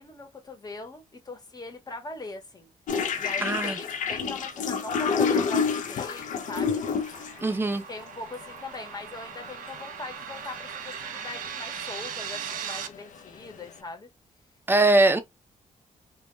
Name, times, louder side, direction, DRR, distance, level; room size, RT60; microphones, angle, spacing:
voice 1, 0.0-2.7 3.2-6.8 7.4-7.6 7.9-14.1, left 3 dB, 30° left, 0.8 m, -41 dB
sound 1, 2.9-7.4 8.4-8.6 9.0-9.1 9.4-9.8 10.2-10.6 10.9-13.3, left 5 dB, 65° left, 0.4 m, -28 dB
voice 2, 3.4-3.8 7.4-7.8 14.7-15.2, right 2 dB, 15° right, 0.4 m, -21 dB
sound 2, 5.3-12.9, right 8 dB, 85° right, 0.4 m, -39 dB
2.2 x 2.1 x 2.9 m
cardioid pair, 85°, 14 cm